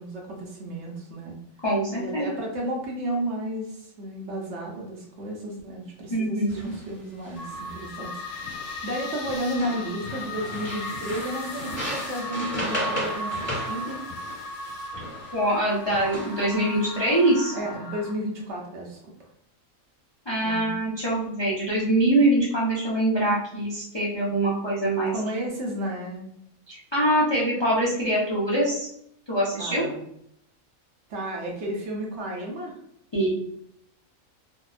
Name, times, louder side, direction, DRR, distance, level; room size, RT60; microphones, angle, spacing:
voice 1, 0.0-1.4 2.0-14.0 17.5-19.3 20.4-20.8 25.1-26.3 29.6-30.0 31.1-32.8, right 1 dB, 65° right, -1 dB, 0.8 m, -33 dB
voice 2, 1.6-2.3 6.1-6.5 15.3-17.5 20.3-25.1 26.7-28.9 29.3-29.8 33.1-33.3, right 1 dB, 40° left, -7 dB, 0.3 m, -24 dB
sound 1, 6.5-6.8 7.2-7.9 8.4-9.0 9.2-15.4 15.9-16.5, equal, 10° left, 1.2 m, -35 dB
sound 2, 7.4-18.1, left 1 dB, 60° left, 1.1 m, -36 dB
2.7 x 2.2 x 2.3 m, 0.72 s
omnidirectional pair, 1.4 m